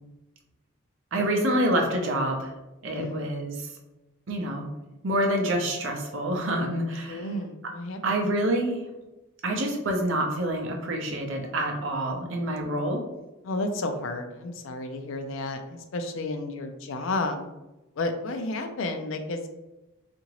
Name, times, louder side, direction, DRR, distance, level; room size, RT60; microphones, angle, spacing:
voice 1, 1.1-2.5 2.8-3.5 4.3-4.7 5.0-7.3 8.0-8.8 9.4-13.0, right 1 dB, 70° right, 2 dB, 0.6 m, -27 dB
voice 2, 2.9-3.3 7.1-8.2 13.4-17.4 18.0-19.5, left 2 dB, 70° left, 6 dB, 0.4 m, -32 dB
2.8 x 2.5 x 2.9 m, 0.99 s
head